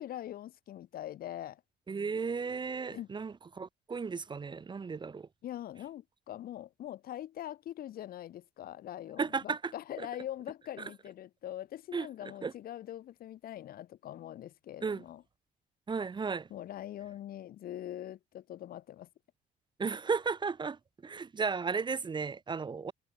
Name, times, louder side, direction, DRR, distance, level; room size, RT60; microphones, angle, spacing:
voice 1, 0.0-1.6 2.9-3.1 5.4-15.2 16.5-19.1, left 12 dB, 60° left, 1.9 m, -43 dB
voice 2, 1.9-5.3 9.2-9.7 10.0-10.1 11.9-12.1 12.4-12.5 14.8-15.0 15.9-16.5 19.8-22.9, right 5 dB, 25° right, 1.8 m, -34 dB
cardioid pair, 110°, 17 cm